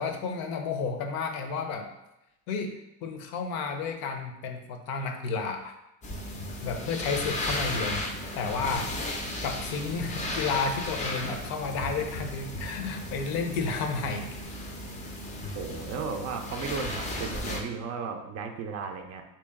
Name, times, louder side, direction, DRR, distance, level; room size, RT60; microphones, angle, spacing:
voice 1, 0.0-1.9 2.5-5.7 6.6-8.1 8.4-8.9 9.4-14.4, left 4 dB, 60° left, 5 dB, 0.7 m, -31 dB
sound 1, 6.0-17.6, left 1 dB, 20° left, 0.5 m, -35 dB
voice 2, 15.5-19.2, right 5 dB, 40° right, 4 dB, 0.4 m, -35 dB
3.0 x 2.9 x 3.5 m, 0.90 s
supercardioid pair, 105°, 41 cm